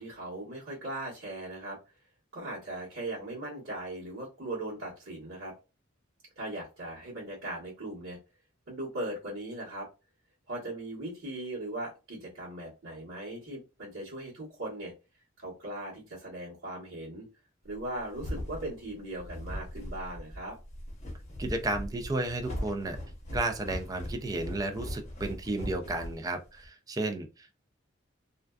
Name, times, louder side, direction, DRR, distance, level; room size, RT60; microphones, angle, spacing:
voice 1, 0.0-1.8 2.3-5.5 6.3-8.2 8.7-9.9 10.5-14.9 15.4-17.3 17.6-20.6, right 1 dB, 85° right, -10 dB, 1.1 m, -39 dB
sound 1, 17.8-26.7, equal, 35° left, 0.8 m, -39 dB
voice 2, 21.4-23.0 23.3-27.6, right 2 dB, 20° right, 6 dB, 0.3 m, -33 dB
2.5 x 2.2 x 2.3 m, 0.30 s
head